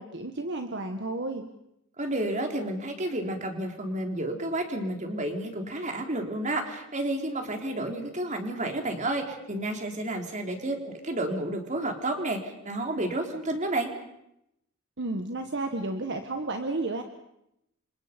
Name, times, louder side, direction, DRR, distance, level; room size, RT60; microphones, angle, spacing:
voice 1, 0.0-1.5 15.0-17.0, right 2 dB, 55° right, 6 dB, 1.6 m, -32 dB
voice 2, 2.0-13.9, right 1 dB, 35° right, 3 dB, 3.7 m, -31 dB
30.0 x 26.5 x 5.3 m, 0.81 s
head